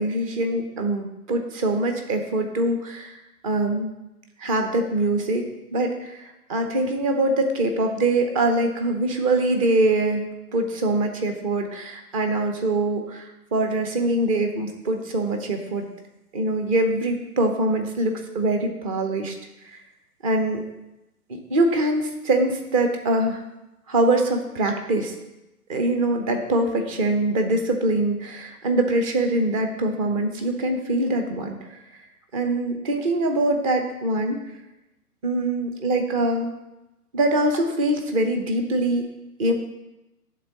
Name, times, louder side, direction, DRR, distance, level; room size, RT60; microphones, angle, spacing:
voice 1, 0.0-3.2 3.4-3.9 4.4-5.4 5.7-15.9 16.3-19.3 19.7-19.8 20.2-20.6 21.3-23.4 23.9-25.1 25.7-31.6 32.3-34.4 35.2-36.5 37.1-39.0 39.4-39.5, right 2 dB, 20° right, 4 dB, 0.7 m, -23 dB
11.0 x 3.9 x 5.8 m, 0.96 s
figure-of-eight pair, 130°, 47 cm